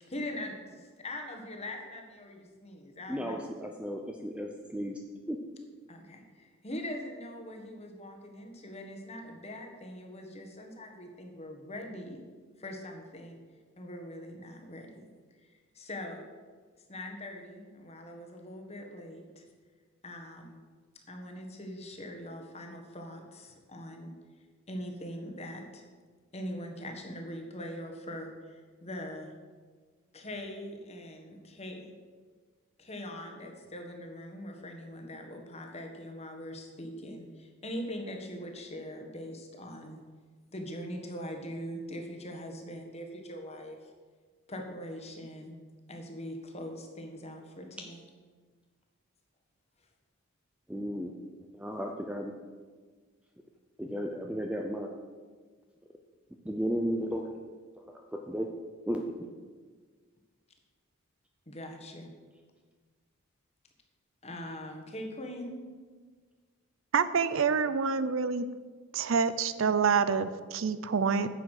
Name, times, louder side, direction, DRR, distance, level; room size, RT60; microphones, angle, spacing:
voice 1, 0.1-3.8 5.9-12.2 12.6-13.4 13.8-15.1 15.4-16.2 16.9-19.4 20.0-20.6 21.1-24.1 24.7-25.8 26.3-29.3 30.1-31.8 32.8-40.0 40.5-43.9 44.5-45.5 45.9-48.0 61.5-62.1 64.2-65.5, left 1 dB, 30° left, 3 dB, 1.5 m, -42 dB
voice 2, 3.1-4.9 5.3-5.4 50.7-51.1 51.6-52.3 53.8-54.9 56.5-57.3 58.3-58.5 58.9-59.0, equal, 5° right, 2 dB, 0.6 m, -34 dB
voice 3, 66.9-68.5 68.9-71.3, right 5 dB, 65° right, 13 dB, 0.5 m, -27 dB
9.8 x 7.3 x 6.5 m, 1.5 s
head